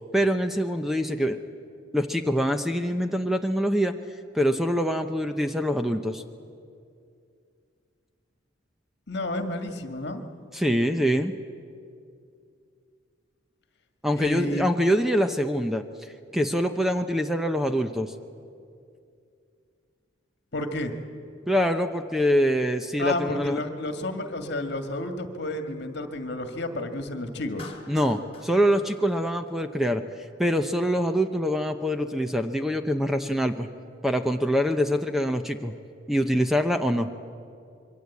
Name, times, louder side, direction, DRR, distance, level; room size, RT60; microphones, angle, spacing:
voice 1, 0.1-1.4 1.9-3.9 4.3-6.2 10.5-11.3 14.0-18.1 21.5-23.6 27.9-30.0 30.4-33.7 34.0-35.7 36.1-37.1, equal, ahead, 6 dB, 0.7 m, -24 dB
voice 2, 9.1-10.2 14.1-14.7 20.5-20.9 23.0-27.7, left 1 dB, 60° left, 6 dB, 1.9 m, -31 dB
Clapping, 27.6-29.9, left 4 dB, 30° left, 2.8 m, -47 dB
26.0 x 23.0 x 8.4 m, 2.4 s
head